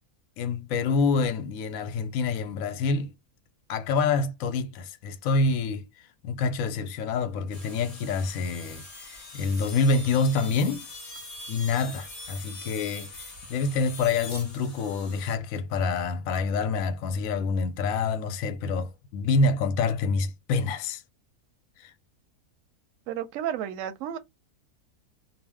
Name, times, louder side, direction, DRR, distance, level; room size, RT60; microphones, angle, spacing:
voice 1, 0.4-3.1 3.7-5.9 6.2-10.9 11.5-21.0 21.8-21.9, left 4 dB, 70° left, 0.9 m, -27 dB
sound 1, 7.5-15.4, left 2 dB, 35° left, 0.7 m, -43 dB
voice 2, 23.1-24.2, right 10 dB, 70° right, 0.8 m, -32 dB
2.6 x 2.0 x 3.4 m
omnidirectional pair, 1.6 m